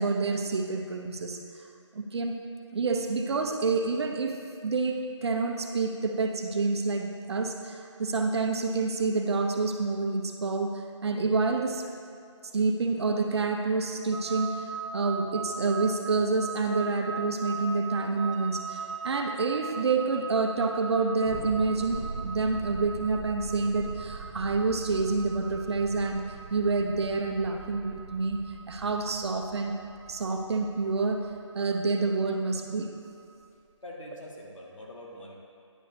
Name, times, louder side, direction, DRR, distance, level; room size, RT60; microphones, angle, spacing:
voice 1, 0.0-1.7 1.9-2.3 2.7-11.8 12.5-26.2 26.5-29.7 30.1-31.2 31.5-32.9, right 3 dB, 55° right, 3 dB, 0.8 m, -28 dB
sound 1, 14.1-33.2, right 5 dB, 80° right, 1.0 m, -40 dB
Thunder, 21.3-31.9, right 4 dB, 35° right, 1.7 m, -43 dB
voice 2, 33.8-35.3, left 1 dB, 85° left, -2 dB, 1.7 m, -44 dB
9.9 x 6.5 x 2.8 m, 2.4 s
figure-of-eight pair, 155°, 16 cm